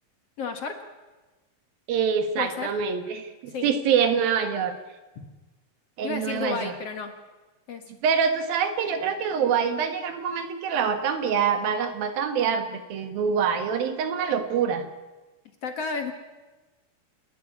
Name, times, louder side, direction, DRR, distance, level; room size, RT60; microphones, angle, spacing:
voice 1, 0.4-0.8 2.4-2.7 3.5-3.7 6.0-7.1 7.7-7.8 15.6-16.1, left 5 dB, 50° left, 6 dB, 2.2 m, -31 dB
voice 2, 1.9-4.8 6.0-6.7 8.0-14.9, right 7 dB, 85° right, 7 dB, 3.5 m, -25 dB
28.5 x 12.0 x 9.7 m, 1.2 s
omnidirectional pair, 4.1 m